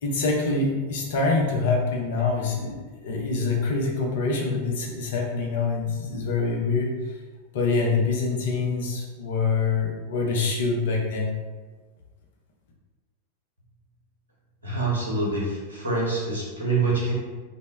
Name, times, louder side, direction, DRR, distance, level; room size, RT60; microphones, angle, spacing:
voice 1, 0.0-6.9 7.5-11.3, left 4 dB, 55° left, -2 dB, 0.5 m, -25 dB
voice 2, 14.6-17.1, right 3 dB, 80° right, -5 dB, 0.8 m, -26 dB
2.0 x 2.0 x 3.2 m, 1.3 s
figure-of-eight pair, 90°, 0 cm